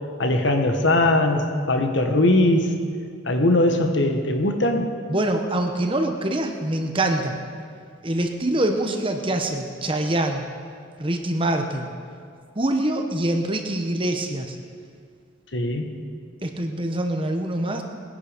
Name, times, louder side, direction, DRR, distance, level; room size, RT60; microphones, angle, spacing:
voice 1, 0.2-2.7 3.2-5.0 15.5-16.0, left 1 dB, 60° left, 4 dB, 1.4 m, -20 dB
voice 2, 5.1-7.3 8.0-10.4 11.0-11.9 12.5-14.6 16.4-17.8, right 1 dB, 25° right, 4 dB, 1.1 m, -24 dB
20.5 x 10.5 x 5.2 m, 2.2 s
head